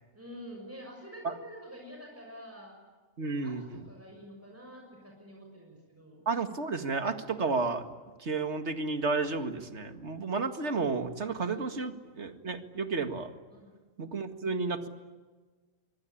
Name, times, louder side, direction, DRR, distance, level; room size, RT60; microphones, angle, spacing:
voice 1, 0.1-2.7 3.2-6.3 11.8-12.0 13.5-13.8, equal, 10° right, 0 dB, 6.5 m, -48 dB
voice 2, 3.2-3.8 6.3-7.9 8.2-13.3 14.0-14.9, right 4 dB, 55° right, 7 dB, 2.3 m, -32 dB
25.0 x 23.5 x 9.9 m, 1.4 s
omnidirectional pair, 1.4 m